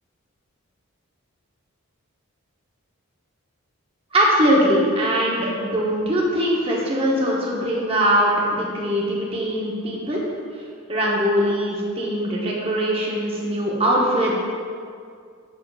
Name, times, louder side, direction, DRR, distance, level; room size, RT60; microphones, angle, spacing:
voice 1, 4.1-10.2 10.9-14.4, equal, 25° right, -3 dB, 0.8 m, -21 dB
7.0 x 6.6 x 2.4 m, 2.2 s
head